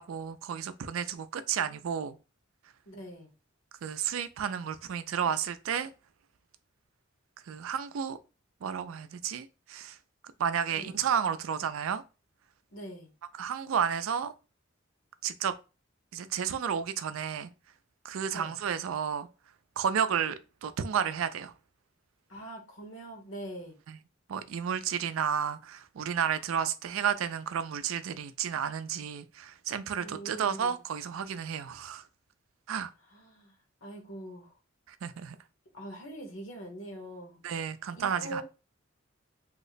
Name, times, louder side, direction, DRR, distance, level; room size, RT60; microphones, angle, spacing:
voice 1, 0.0-2.2 3.8-5.9 7.5-8.2 8.6-10.0 10.4-12.0 13.4-14.3 15.2-15.5 16.1-17.5 18.0-19.3 19.8-21.5 23.9-24.0 24.3-32.0 32.7-32.9 34.9-35.4 37.4-38.4, right 8 dB, 75° right, 0.4 m, -32 dB
voice 2, 2.9-3.3 10.7-11.1 12.7-13.1 18.3-18.5 22.3-23.8 30.0-30.8 33.1-33.5 33.8-34.5 35.7-37.4 38.0-38.4, right 1 dB, 75° left, 1.2 m, -43 dB
2.9 x 2.1 x 3.9 m
head